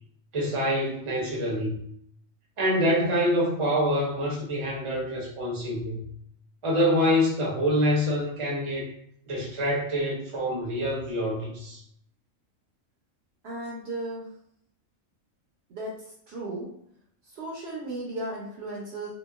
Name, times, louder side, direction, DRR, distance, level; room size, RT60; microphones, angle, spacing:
voice 1, 0.3-1.8 2.6-6.0 6.6-8.9 9.3-11.8, equal, 30° right, -3 dB, 0.6 m, -26 dB
voice 2, 13.4-14.2 15.7-15.9 16.3-16.7 17.3-19.1, right 1 dB, 60° right, -3 dB, 0.8 m, -35 dB
2.8 x 2.1 x 2.3 m, 0.68 s
omnidirectional pair, 1.4 m